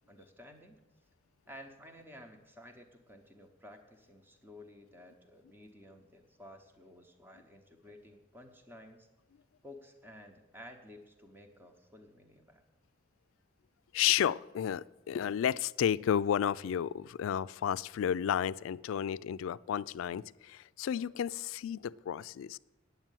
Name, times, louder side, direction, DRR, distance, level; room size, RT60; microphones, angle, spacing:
voice 1, 0.1-0.8 1.5-9.1 9.6-12.6, left 1 dB, 10° right, 5 dB, 0.9 m, -53 dB
voice 2, 13.9-22.6, left 9 dB, 85° left, 18 dB, 0.3 m, -32 dB
9.4 x 7.5 x 9.1 m, 1.1 s
head